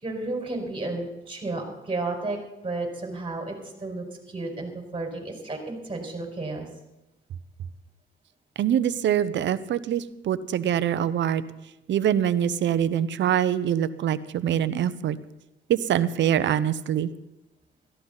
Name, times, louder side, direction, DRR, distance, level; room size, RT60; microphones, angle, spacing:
voice 1, 0.0-2.4 2.6-6.7, right 2 dB, 25° right, 2 dB, 5.1 m, -32 dB
voice 2, 8.6-11.4 11.9-15.2 15.7-17.1, right 10 dB, 65° right, 14 dB, 0.9 m, -24 dB
17.0 x 14.5 x 4.1 m, 0.95 s
cardioid pair, 90°, 20 cm